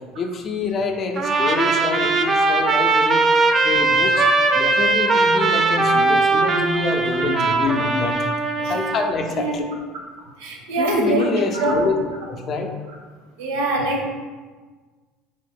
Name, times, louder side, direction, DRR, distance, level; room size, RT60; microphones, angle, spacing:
voice 1, 0.2-3.2 3.6-4.3 4.5-8.3 8.7-9.7 10.8-12.0 12.3-12.7, left 4 dB, 45° left, 4 dB, 0.4 m, -26 dB
Trumpet, 1.2-9.1, right 3 dB, 40° right, 0.3 m, -19 dB
voice 2, 9.3-9.6 10.4-11.3 11.5-11.8 13.4-14.1, right 2 dB, 80° right, 0 dB, 0.6 m, -24 dB
2.6 x 2.1 x 3.5 m, 1.4 s
hypercardioid pair, 85°, 0 cm